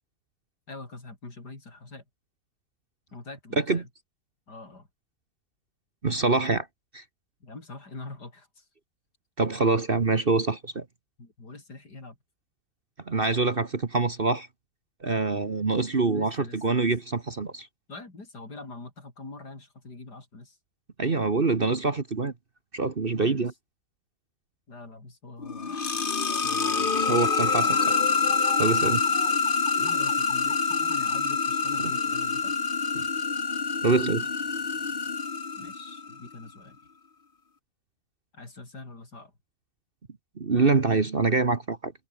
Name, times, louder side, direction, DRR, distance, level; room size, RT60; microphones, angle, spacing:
voice 1, 0.7-2.0 3.1-3.9 4.5-4.9 7.4-8.7 11.2-12.2 16.1-17.0 17.9-20.6 23.1-23.5 24.7-26.0 26.4-27.1 29.8-32.6 35.6-36.8 38.3-39.3, left 3 dB, 70° left, 5.8 m, -44 dB
voice 2, 6.0-6.7 6.9-7.0 9.4-10.8 13.1-14.5 15.0-16.3 16.6-17.7 21.0-22.3 22.7-23.5 27.1-27.8 28.6-29.0 32.9-33.1 33.8-34.3 40.4-41.9, right 3 dB, 35° right, 1.5 m, -25 dB
sound 1, 25.4-36.2, left 5 dB, 35° left, 1.5 m, -26 dB
omnidirectional pair, 1.8 m